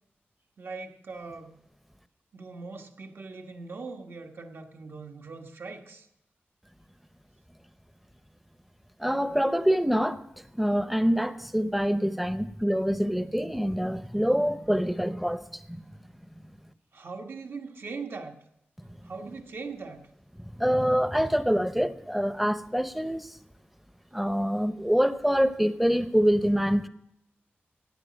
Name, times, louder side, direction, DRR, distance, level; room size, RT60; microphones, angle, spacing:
voice 1, 0.6-1.5 2.3-6.1 16.9-18.4 19.0-20.1, right 4 dB, 65° right, 1.3 m, -40 dB
voice 2, 9.0-15.8 20.5-23.4 24.1-26.9, equal, 5° right, 0.7 m, -25 dB
16.0 x 9.6 x 5.1 m
wide cardioid pair, 105°, 4 cm